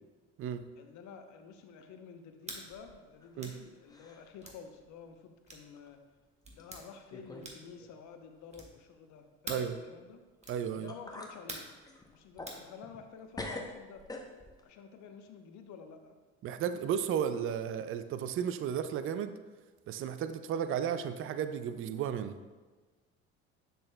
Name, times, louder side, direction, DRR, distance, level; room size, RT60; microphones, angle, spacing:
voice 1, 0.8-6.0 6.5-10.2 10.7-11.7 12.1-14.1 14.6-16.2, left 6 dB, 55° left, 7 dB, 0.8 m, -50 dB
sound 1, 2.4-2.6 3.4-3.6 4.4-4.6 5.5-5.7 6.4-6.8 7.4-7.7 8.5-8.8 9.4-9.7 10.4-10.6 11.5-11.8 12.5-12.6, right 2 dB, 20° right, 1.4 m, -44 dB
sound 2, 2.7-3.6 3.9-4.4 4.8-4.9 5.8-5.9 6.6-6.7 7.1-7.5 7.8-7.9 10.4-10.5 10.9-11.4 11.8-13.1 13.3-14.6, left 2 dB, 10° left, 0.8 m, -45 dB
voice 2, 10.5-10.9 16.4-19.4 19.9-22.4, right 8 dB, 40° right, 11 dB, 0.4 m, -34 dB
7.8 x 6.3 x 2.2 m, 1.3 s
hypercardioid pair, 65°, 34 cm